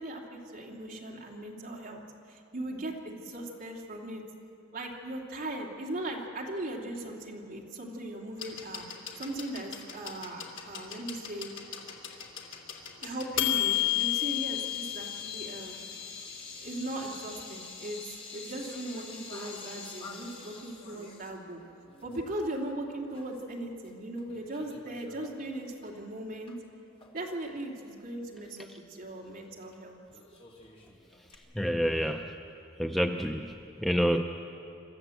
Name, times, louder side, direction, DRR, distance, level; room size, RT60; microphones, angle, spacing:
voice 1, 0.0-2.0 2.3-4.2 4.7-8.9 9.1-11.5 13.0-15.8 16.6-21.6 22.0-26.5 27.1-30.0, right 1 dB, 45° right, -1 dB, 2.8 m, -38 dB
sound 1, 8.4-16.2 17.3-17.4, left 13 dB, 65° left, 2.4 m, -33 dB
sound 2, 13.7-22.3 22.6-22.7 23.1-23.9 24.2-26.6 27.0-27.1 29.6-29.7 30.1-31.4, left 4 dB, 25° left, 2.4 m, -46 dB
voice 2, 31.5-32.3 32.8-34.2, equal, ahead, 4 dB, 0.5 m, -28 dB
26.5 x 13.5 x 7.8 m, 2.7 s
head